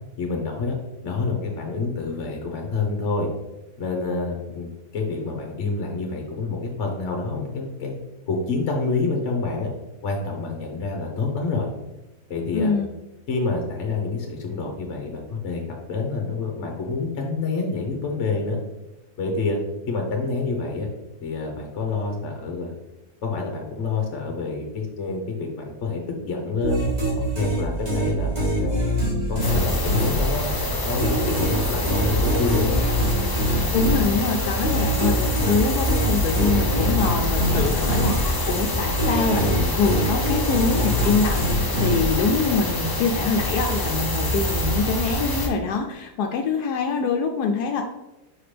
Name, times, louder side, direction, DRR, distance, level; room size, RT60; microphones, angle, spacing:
voice 1, 0.2-0.8 1.0-3.3 3.8-4.7 4.9-8.0 8.3-9.7 10.0-11.7 12.3-12.7 13.3-15.6 15.9-18.6 19.2-19.6 19.9-20.9 21.2-22.8 23.2-26.9 27.3-28.7 29.3-30.5 30.8-32.8, left 3 dB, 50° left, 2 dB, 1.1 m, -27 dB
voice 2, 12.5-12.9 33.7-47.8, left 4 dB, 80° left, 4 dB, 1.1 m, -24 dB
sound 1, 26.6-30.6 31.0-38.6 39.0-42.5, equal, 25° right, 1.5 m, -24 dB
sound 2, 29.4-45.5, left 1 dB, 25° left, 0.4 m, -26 dB
5.8 x 5.0 x 3.3 m, 0.98 s
omnidirectional pair, 1.7 m